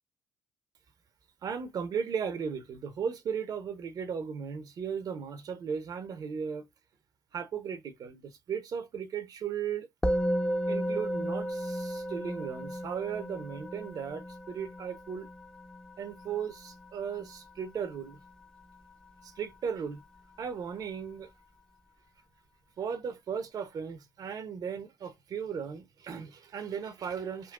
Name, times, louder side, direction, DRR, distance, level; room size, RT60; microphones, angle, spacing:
voice 1, 1.4-6.6 7.3-9.9 10.7-15.3 16.0-18.2 19.2-20.0 20.4-21.3 22.8-27.5, right 7 dB, 55° right, 0.6 m, -36 dB
Musical instrument, 10.0-19.6, equal, 10° left, 0.6 m, -34 dB
3.7 x 2.2 x 2.3 m
hypercardioid pair, 50°, 8 cm